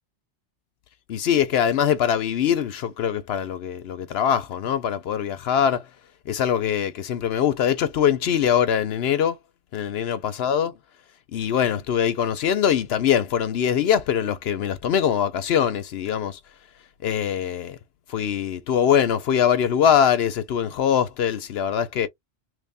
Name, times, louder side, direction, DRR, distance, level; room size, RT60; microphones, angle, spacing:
voice 1, 1.1-5.9 6.3-9.4 9.7-10.8 11.3-16.4 17.0-17.8 18.1-22.1, left 8 dB, 70° left, 0.8 m, -22 dB
3.2 x 2.5 x 3.4 m
omnidirectional pair, 1.2 m